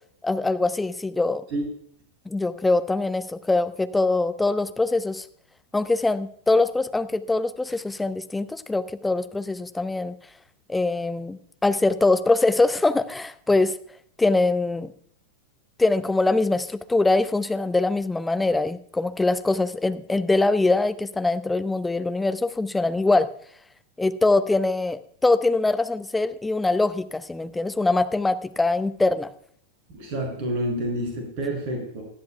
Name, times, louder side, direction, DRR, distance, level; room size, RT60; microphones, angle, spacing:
voice 1, 0.2-1.4 2.3-5.3 5.7-10.1 10.7-13.7 14.2-14.9 15.8-23.3 24.0-29.3, left 2 dB, 10° left, 12 dB, 0.7 m, -23 dB
voice 2, 29.9-32.0, right 1 dB, 45° right, 1 dB, 6.5 m, -28 dB
19.0 x 13.0 x 2.3 m, 0.65 s
figure-of-eight pair, 90°, 0 cm